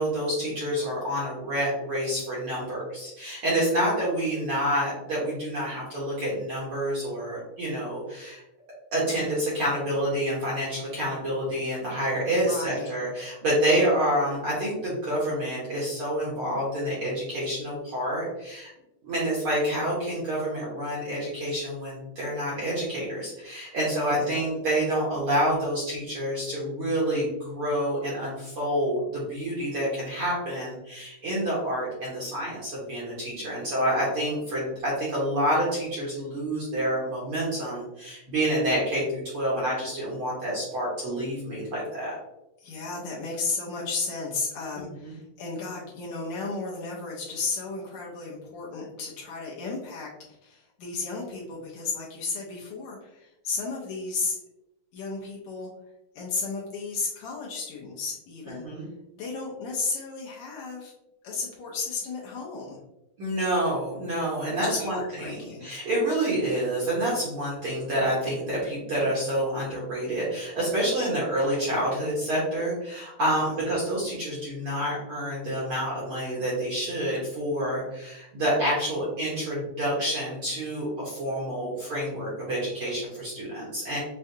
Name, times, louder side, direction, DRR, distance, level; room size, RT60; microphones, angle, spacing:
voice 1, 0.0-8.4 8.9-18.7 19.0-42.2 45.0-45.1 58.6-58.9 63.2-84.0, right 1 dB, 60° right, -6 dB, 1.5 m, -28 dB
voice 2, 12.3-12.9 24.0-24.4 42.6-54.4 54.9-55.7 56.2-58.6 59.2-60.9 61.2-62.8 64.5-65.7 73.3-73.5, left 4 dB, 70° left, -4 dB, 1.9 m, -34 dB
6.7 x 2.3 x 2.7 m, 0.90 s
omnidirectional pair, 3.7 m